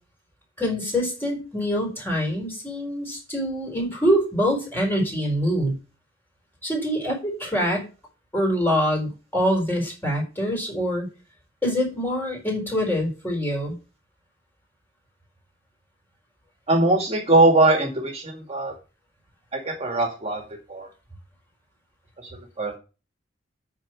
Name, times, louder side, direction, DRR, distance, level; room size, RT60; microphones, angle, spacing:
voice 1, 0.6-5.8 6.6-7.9 8.3-11.1 11.6-13.8, equal, 10° left, -1 dB, 4.2 m, -25 dB
voice 2, 16.7-18.7 19.5-20.4 20.7-20.9 22.2-22.7, right 2 dB, 35° right, 3 dB, 2.0 m, -21 dB
8.8 x 4.7 x 7.4 m, 0.31 s
head